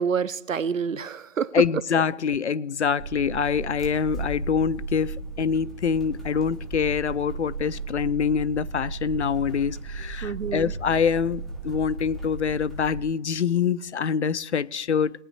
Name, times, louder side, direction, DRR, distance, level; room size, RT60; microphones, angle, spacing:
voice 1, 0.0-1.5 10.2-10.7, right 6 dB, 85° right, 0.8 m, -28 dB
voice 2, 1.5-15.2, left 6 dB, 60° left, 0.5 m, -25 dB
sound 1, 3.0-13.0, right 3 dB, ahead, 0.5 m, -35 dB
22.0 x 9.3 x 3.1 m
hypercardioid pair, 175°, 39 cm